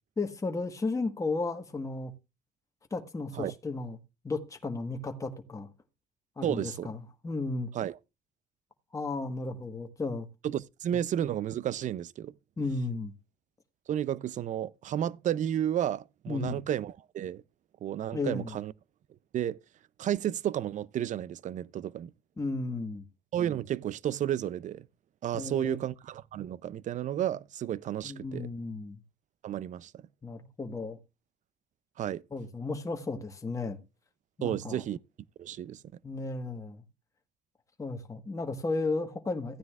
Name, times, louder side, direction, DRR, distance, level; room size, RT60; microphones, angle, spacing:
voice 1, 0.2-2.1 2.9-4.0 4.2-5.7 6.4-7.7 8.9-10.3 12.6-13.1 16.3-16.6 18.1-18.5 22.4-23.0 25.3-25.8 28.0-29.0 30.2-31.0 32.3-33.8 34.4-34.8 36.0-36.8 37.8-39.6, left 3 dB, 20° left, 1.3 m, -34 dB
voice 2, 6.4-6.9 7.7-8.0 10.4-12.3 13.9-17.4 17.8-18.7 19.3-19.6 20.0-22.1 23.3-24.9 25.2-28.5 29.4-29.9 32.0-32.2 34.4-35.0 35.4-35.8, right 11 dB, 45° right, 0.5 m, -32 dB
15.5 x 9.5 x 2.4 m
cardioid pair, 110°, 17 cm